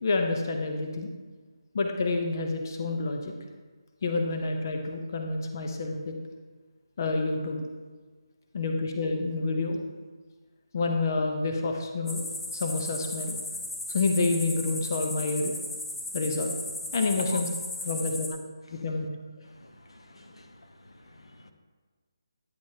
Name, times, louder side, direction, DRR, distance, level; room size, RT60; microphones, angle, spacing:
voice 1, 0.0-1.1 1.7-3.3 4.0-6.1 7.0-7.6 8.5-9.8 10.7-13.4 13.9-15.6 16.1-16.5 16.9-17.5 17.8-18.3 18.7-19.0, left 3 dB, 40° left, 3 dB, 0.7 m, -28 dB
sound 1, 12.1-18.3, left 1 dB, 60° left, 2.2 m, -36 dB
voice 2, 19.6-20.6 21.0-21.5, left 2 dB, 85° left, 5 dB, 0.9 m, -46 dB
9.6 x 6.4 x 2.8 m, 1.4 s
figure-of-eight pair, 165°, 3 cm